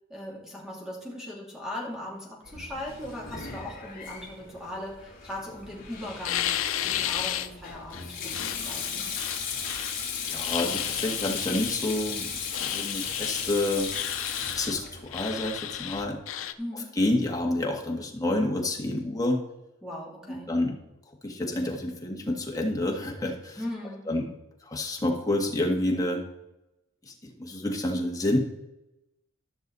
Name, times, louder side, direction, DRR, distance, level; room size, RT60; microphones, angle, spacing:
voice 1, 0.1-6.5 6.8-9.1 16.6-16.9 19.8-20.5 23.6-24.0, left 1 dB, 5° right, -3 dB, 2.8 m, -38 dB
Sink (filling or washing), 2.5-16.1, left 6 dB, 45° left, 3.1 m, -36 dB
sound 1, 6.2-7.5 7.9-10.0 10.4-11.8 12.5-13.5 13.9-14.8 15.1-16.5, left 11 dB, 75° left, 0.6 m, -33 dB
voice 2, 10.3-12.3 12.6-13.9 14.4-16.2 17.0-19.4 20.3-20.8 21.2-23.6 24.1-24.2 24.6-26.2 27.1-28.4, left 1 dB, 20° left, 0 dB, 1.7 m, -28 dB
14.0 x 6.4 x 4.1 m, 0.93 s
head